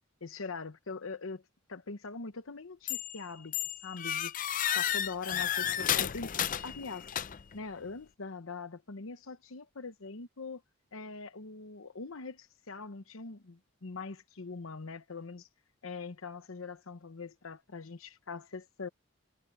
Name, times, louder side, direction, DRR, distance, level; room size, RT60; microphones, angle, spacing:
voice 1, 0.2-1.4 1.7-3.5 3.8-4.4 4.7-6.3 6.6-7.1 7.5-10.6 10.9-15.5 15.8-18.9, left 4 dB, 85° left, 1.0 m, -42 dB
sound 1, 2.9-3.2 3.5-7.6, left 10 dB, 40° left, 0.5 m, -32 dB
head